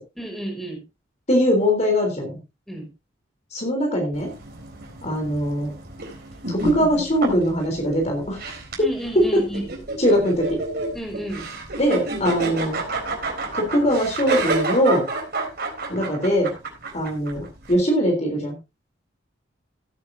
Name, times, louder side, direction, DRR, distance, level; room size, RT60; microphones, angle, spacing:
voice 1, 0.2-0.8 2.7-2.9 8.8-9.7 10.9-11.5, right 1 dB, ahead, 1 dB, 5.2 m, -31 dB
voice 2, 1.3-2.3 3.5-4.3 5.0-5.7 6.5-8.4 9.2-9.4 10.0-10.6 11.8-12.8 13.6-15.0 15.9-16.5 16.9-18.6, equal, 35° left, 2 dB, 3.7 m, -21 dB
sound 1, 4.1-17.7, right 2 dB, 55° right, 4.0 m, -30 dB
16.0 x 9.6 x 2.7 m, 0.25 s
head